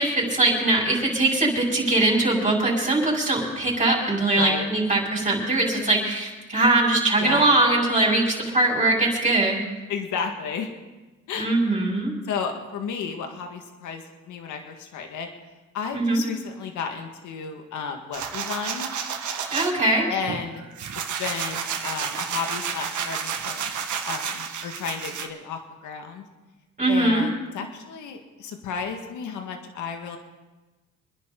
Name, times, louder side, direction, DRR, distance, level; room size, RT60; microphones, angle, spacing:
voice 1, 0.0-9.6 11.4-12.1 15.9-16.2 19.5-20.1 26.8-27.3, right 2 dB, 25° right, -4 dB, 5.4 m, -21 dB
voice 2, 9.9-10.7 11.3-11.5 12.3-15.3 15.7-18.9 20.1-20.6 21.2-23.7 24.1-26.2 26.9-30.2, left 6 dB, 80° left, 4 dB, 1.9 m, -32 dB
sound 1, 18.1-19.7 20.3-25.3, right 7 dB, 75° right, 1.7 m, -31 dB
27.0 x 10.5 x 3.9 m, 1.2 s
cardioid pair, 90°, 30 cm